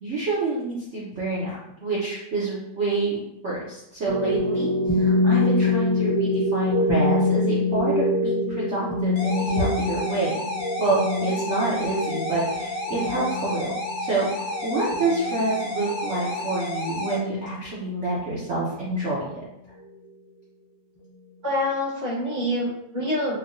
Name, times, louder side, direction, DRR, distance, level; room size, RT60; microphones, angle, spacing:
voice 1, 0.0-3.2 3.4-10.3 10.8-13.7 14.0-19.4, right 2 dB, 75° right, -7 dB, 0.6 m, -27 dB
sound 1, 4.0-17.5, left 2 dB, 5° left, 0.6 m, -25 dB
sound 2, 9.2-17.2, left 1 dB, 70° left, 0.6 m, -31 dB
voice 2, 21.4-23.4, left 1 dB, 35° right, -10 dB, 1.6 m, -26 dB
4.4 x 2.2 x 2.6 m, 0.79 s
omnidirectional pair, 2.1 m